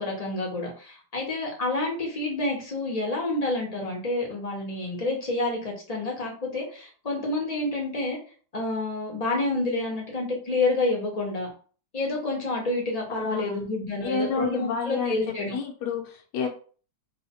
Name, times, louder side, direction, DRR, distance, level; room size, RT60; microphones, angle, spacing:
voice 1, 0.0-8.2 8.5-11.5 11.9-15.6, left 2 dB, 35° left, -1 dB, 0.6 m, -28 dB
voice 2, 13.1-13.6 14.0-15.2 15.5-16.5, left 5 dB, 70° left, 2 dB, 1.3 m, -29 dB
3.1 x 2.2 x 4.1 m, 0.41 s
omnidirectional pair, 2.0 m